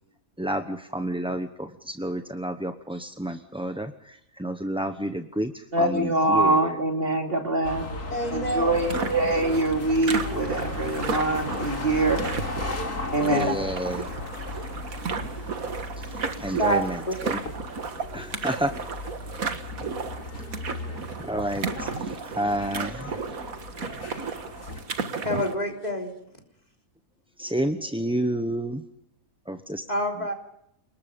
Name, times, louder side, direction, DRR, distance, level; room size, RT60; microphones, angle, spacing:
voice 1, 0.4-6.7 13.2-14.1 16.1-17.4 18.1-18.8 20.4-23.1 27.4-28.8 29.5-29.8, right 1 dB, 5° right, 7 dB, 0.7 m, -30 dB
voice 2, 5.7-7.9 8.3-12.2 13.1-13.5, right 2 dB, 35° right, 3 dB, 3.0 m, -24 dB
sound 1, 7.6-24.8, left 2 dB, 70° left, 3.3 m, -36 dB
voice 3, 8.1-8.8 13.3-13.6 16.6-17.1 25.2-26.1 29.9-30.3, equal, 25° left, 2 dB, 3.6 m, -27 dB
sound 2, 8.7-25.6, right 5 dB, 60° right, 2.0 m, -34 dB
29.5 x 20.5 x 5.3 m, 0.77 s
omnidirectional pair, 1.7 m